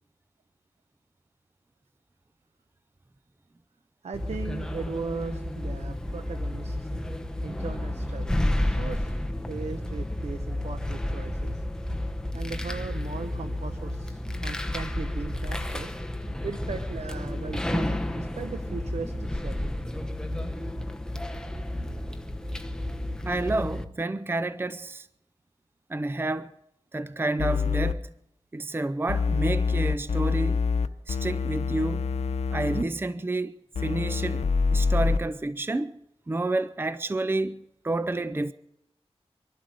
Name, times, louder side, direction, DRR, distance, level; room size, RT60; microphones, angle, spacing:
voice 1, 4.0-6.9 7.4-9.2 9.5-11.6 12.3-15.9 16.4-19.7, right 4 dB, 85° right, 1.0 m, -38 dB
sound 1, 4.1-23.8, left 1 dB, 5° left, 1.0 m, -31 dB
voice 2, 23.3-25.1 25.9-26.6 26.9-28.1 28.5-30.6 31.1-32.0 32.5-33.5 33.8-36.0 36.3-37.6 37.8-38.5, right 2 dB, 20° right, 0.5 m, -29 dB
sound 2, 27.4-27.9 29.1-32.8 33.7-35.2, left 4 dB, 85° left, 0.8 m, -26 dB
24.5 x 11.5 x 4.9 m
wide cardioid pair, 90°, 11 cm